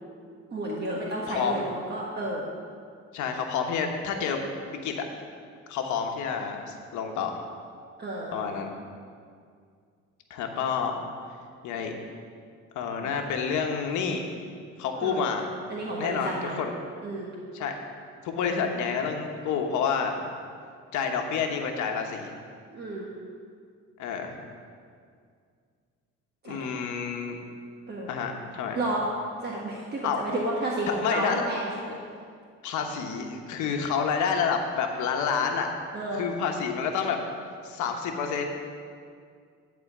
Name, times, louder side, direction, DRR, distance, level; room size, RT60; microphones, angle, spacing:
voice 1, 0.5-2.5 8.0-8.4 13.0-13.1 15.0-15.3 15.7-16.6 17.0-17.3 22.7-23.1 26.4-26.7 27.9-28.1 28.7-29.1 29.4-32.0 35.9-36.2, right 1 dB, 35° right, -3 dB, 1.3 m, -31 dB
voice 2, 3.1-4.4 4.8-5.0 5.7-7.4 8.3-8.7 10.3-11.0 11.6-11.9 12.7-14.2 14.8-15.5 16.0-16.7 17.5-17.8 18.2-20.2 20.9-22.3 24.0-24.4 26.4-27.4 28.1-28.8 30.0-30.2 31.0-31.4 32.6-35.7 36.1-37.2 37.6-38.5, left 6 dB, 75° left, 3 dB, 1.1 m, -29 dB
11.0 x 4.3 x 7.2 m, 2.2 s
cardioid pair, 105°, 30 cm